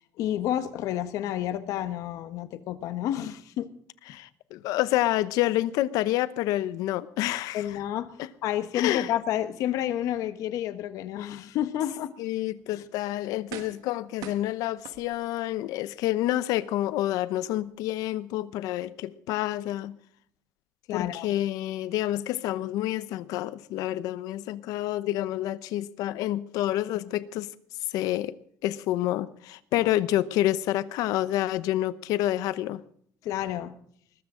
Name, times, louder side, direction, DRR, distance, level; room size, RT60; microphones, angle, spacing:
voice 1, 0.2-3.7 7.5-12.1 12.8-12.9 20.9-21.3 29.8-29.9 33.2-33.7, left 11 dB, 65° left, 1.2 m, -30 dB
voice 2, 4.1-7.6 8.2-8.3 8.7-9.1 12.2-20.0 20.9-27.5 27.9-28.3 28.6-32.8, left 14 dB, 85° left, 0.8 m, -28 dB
sound 1, 12.6-12.7 13.5-13.9 14.2-15.5 16.0-16.1, right 11 dB, 75° right, 1.5 m, -43 dB
20.5 x 14.0 x 3.8 m
cardioid pair, 175°, 6 cm